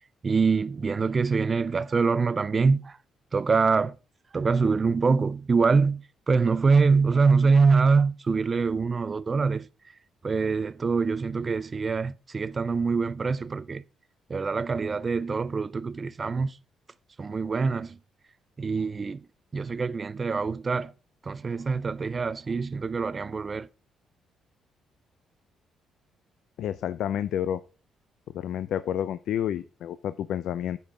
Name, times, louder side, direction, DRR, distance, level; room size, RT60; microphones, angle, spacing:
voice 1, 0.2-3.0 3.3-4.0 4.3-9.7 10.2-13.8 14.3-16.6 17.2-18.0 18.6-19.2 19.5-20.9 21.2-23.7, right 4 dB, 35° right, 0.4 m, -24 dB
voice 2, 26.6-27.6 28.3-30.8, left 10 dB, 75° left, 0.4 m, -29 dB
9.0 x 5.4 x 4.8 m
cardioid pair, 90°, 0 cm